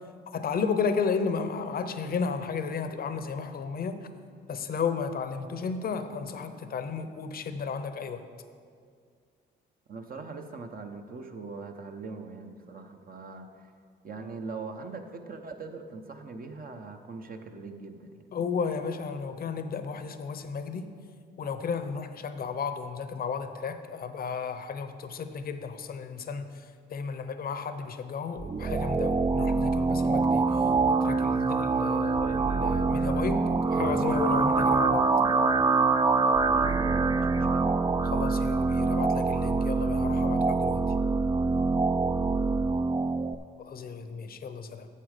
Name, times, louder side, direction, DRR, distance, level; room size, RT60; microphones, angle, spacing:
voice 1, 0.3-4.1 4.5-8.3 18.3-20.9 21.4-30.7 31.0-35.1 38.0-40.8 43.6-44.9, left 5 dB, 50° left, 9 dB, 0.7 m, -33 dB
voice 2, 9.9-13.6 14.0-18.2 36.5-37.7, right 4 dB, 50° right, 5 dB, 0.9 m, -41 dB
sound 1, 28.4-43.3, right 4 dB, 20° right, 0.4 m, -25 dB
9.9 x 7.2 x 5.0 m, 2.2 s
cardioid pair, 90°, 20 cm